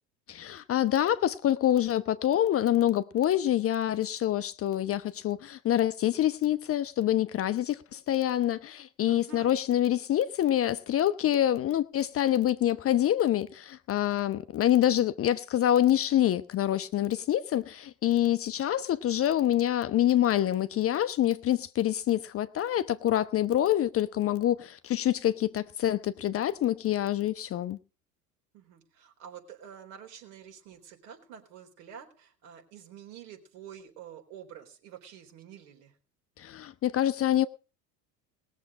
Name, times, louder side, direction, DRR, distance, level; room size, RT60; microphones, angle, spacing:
voice 1, 0.3-27.8 36.4-37.5, left 12 dB, 30° left, 0.7 m, -26 dB
voice 2, 9.1-9.6 28.5-36.0, right 9 dB, 60° right, 4.0 m, -48 dB
20.0 x 7.2 x 5.2 m
figure-of-eight pair, 75°, 49 cm